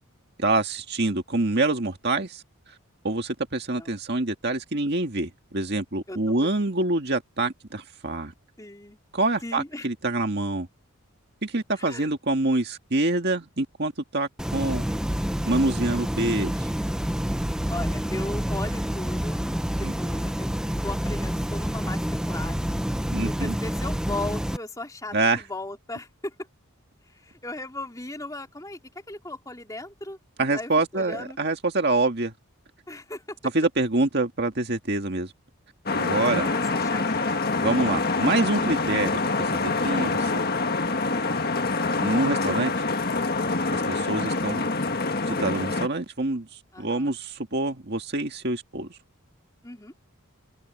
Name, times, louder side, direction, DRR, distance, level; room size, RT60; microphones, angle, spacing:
voice 1, 0.4-2.4 3.0-8.3 9.1-10.7 11.4-14.9 15.5-16.7 19.8-19.9 23.1-23.6 25.1-25.4 30.4-32.3 33.5-35.3 35.9-36.5 37.6-40.4 42.0-42.7 43.7-44.6 45.3-46.5 46.8-49.0, right 2 dB, 45° right, 1.9 m, -26 dB
voice 2, 8.6-9.0 9.4-9.9 11.8-12.1 17.7-20.6 20.8-22.6 23.2-26.3 27.0-28.8 29.1-30.2 30.5-31.4 32.9-33.4 36.1-38.0 41.1-41.5 46.7-47.1 49.6-49.9, left 2 dB, 15° left, 3.4 m, -37 dB
sound 1, 14.4-24.6, equal, 5° right, 0.6 m, -28 dB
sound 2, 35.9-45.9, left 3 dB, 45° left, 1.7 m, -26 dB
head